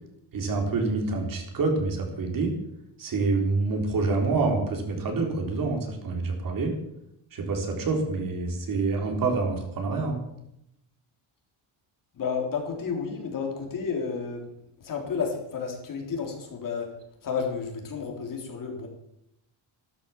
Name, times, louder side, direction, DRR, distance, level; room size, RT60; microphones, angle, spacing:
voice 1, 0.3-2.5 3.0-6.7 7.3-10.2, right 3 dB, 40° right, 3 dB, 3.8 m, -27 dB
voice 2, 12.1-14.5 14.8-16.9 17.2-18.9, left 5 dB, 40° left, 2 dB, 3.6 m, -31 dB
14.5 x 13.0 x 7.1 m, 0.79 s
cardioid pair, 175°, 49 cm